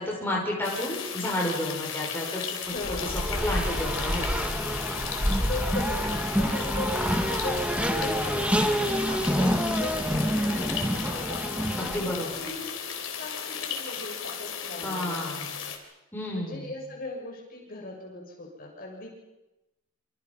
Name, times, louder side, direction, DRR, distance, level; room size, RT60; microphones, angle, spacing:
voice 1, 0.0-2.7 3.0-3.1 3.4-4.4 11.8-12.4 14.8-15.5 16.1-16.7, left 1 dB, 10° left, -3 dB, 5.9 m, -31 dB
sound 1, 0.6-15.8, left 7 dB, 75° left, 4.0 m, -35 dB
voice 2, 2.7-3.2 5.5-11.9 12.4-12.8 13.2-15.6 16.3-19.1, left 2 dB, 45° left, 0 dB, 6.7 m, -38 dB
Race car auto racing, 2.8-12.4, equal, 5° right, 1.9 m, -27 dB
27.5 x 27.0 x 5.6 m, 0.96 s
head